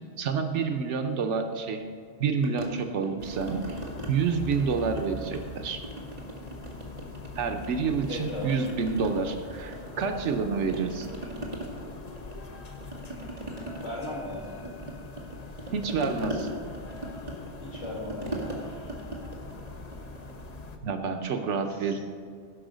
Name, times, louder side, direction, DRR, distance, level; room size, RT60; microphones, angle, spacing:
voice 1, 0.2-1.8 2.2-3.8 4.1-5.8 7.3-11.1 15.7-16.5 20.8-22.0, right 5 dB, 80° right, 6 dB, 1.1 m, -28 dB
sound 1, 2.4-4.1 4.4-5.5 5.8-7.7 8.0-10.4 10.7-20.5, right 2 dB, 35° right, 1.9 m, -39 dB
sound 2, 3.2-20.8, left 3 dB, 40° left, 0.8 m, -43 dB
voice 2, 8.1-8.5 13.8-14.5 17.6-18.4 21.7-22.0, left 1 dB, 75° left, -4 dB, 2.4 m, -36 dB
16.5 x 6.2 x 5.1 m, 2.2 s
omnidirectional pair, 1.2 m